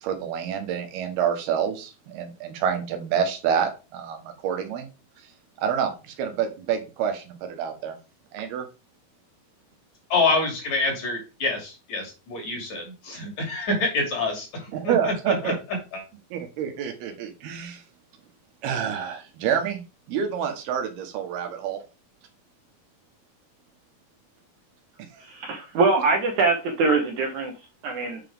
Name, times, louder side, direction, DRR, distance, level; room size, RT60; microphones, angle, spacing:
voice 1, 0.0-4.9 5.6-7.9 8.3-8.6 14.7-15.6 16.3-17.8 18.6-19.8 20.1-21.8, right 8 dB, 85° right, 6 dB, 3.2 m, -27 dB
voice 2, 10.1-15.5 15.9-16.0, left 3 dB, 50° left, 0 dB, 3.8 m, -27 dB
voice 3, 25.2-28.2, right 3 dB, 65° right, 2 dB, 2.2 m, -23 dB
8.1 x 6.0 x 3.5 m, 0.30 s
omnidirectional pair, 4.4 m